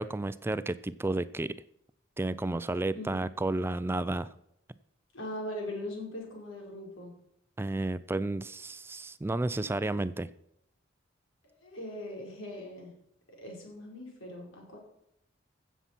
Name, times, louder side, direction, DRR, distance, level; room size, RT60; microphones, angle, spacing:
voice 1, 0.0-1.6 2.2-4.3 7.6-10.3, right 2 dB, 10° right, 15 dB, 0.3 m, -32 dB
voice 2, 5.1-7.1 11.4-12.9 13.4-14.8, left 1 dB, 85° left, 0 dB, 4.8 m, -40 dB
15.5 x 7.3 x 5.8 m, 0.75 s
head